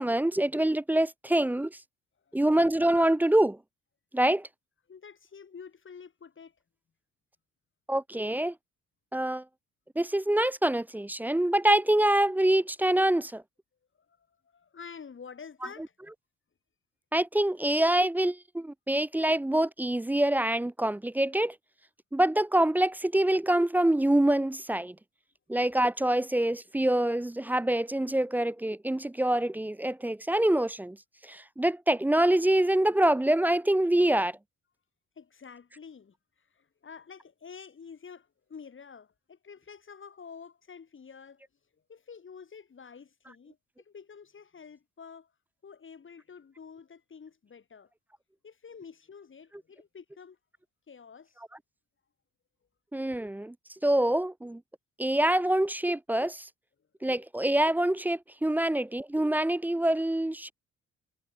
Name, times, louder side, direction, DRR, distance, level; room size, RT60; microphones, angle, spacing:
voice 1, 0.0-1.8 2.3-3.6 4.1-4.5 7.9-8.5 9.1-9.4 10.0-13.4 17.1-21.6 22.1-25.0 25.5-31.0 31.2-34.4 52.9-53.5 53.8-54.6 55.0-56.5 57.0-60.5, right 1 dB, 5° right, 0.3 m, -25 dB
voice 2, 4.9-6.6 14.1-15.9 35.2-41.4 41.9-45.3 45.6-47.9 48.4-50.4 50.9-51.4, left 6 dB, 40° left, 7.3 m, -49 dB
cardioid pair, 90°, 30 cm